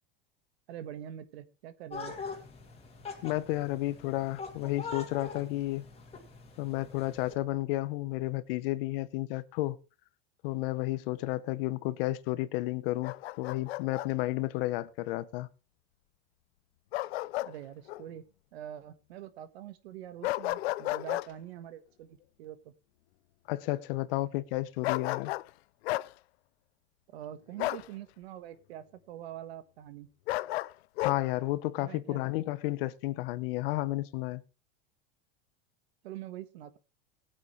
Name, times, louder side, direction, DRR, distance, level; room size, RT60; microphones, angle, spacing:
voice 1, 0.7-2.1 17.4-18.3 18.5-22.7 27.1-30.1 31.8-32.2 36.0-36.8, right 11 dB, 80° right, 1.4 m, -44 dB
sound 1, 1.9-7.3, left 5 dB, 20° left, 2.4 m, -43 dB
voice 2, 3.2-5.8 6.6-9.8 10.4-15.5 23.5-25.3 31.0-34.4, left 17 dB, 65° left, 1.0 m, -32 dB
Bark, 13.0-14.1 16.9-17.5 17.9-18.0 20.2-21.3 24.8-25.5 25.8-26.1 27.6-27.9 30.3-31.2, left 18 dB, 85° left, 0.5 m, -32 dB
19.5 x 8.6 x 3.2 m
supercardioid pair, 135°, 31 cm